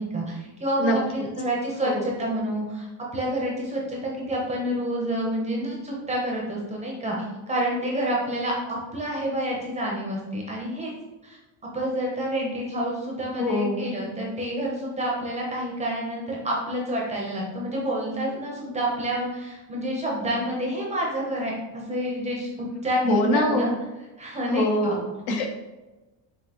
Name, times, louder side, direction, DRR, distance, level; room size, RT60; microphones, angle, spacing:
voice 1, 0.0-10.9 11.2-11.4 11.7-23.7 24.2-25.0, right 1 dB, 15° right, -3 dB, 0.6 m, -28 dB
voice 2, 13.4-13.8 23.0-23.7 24.5-25.0 25.3-25.5, left 1 dB, 65° left, 1 dB, 1.0 m, -23 dB
6.0 x 2.8 x 2.8 m, 1.1 s
cardioid pair, 180°, 45 cm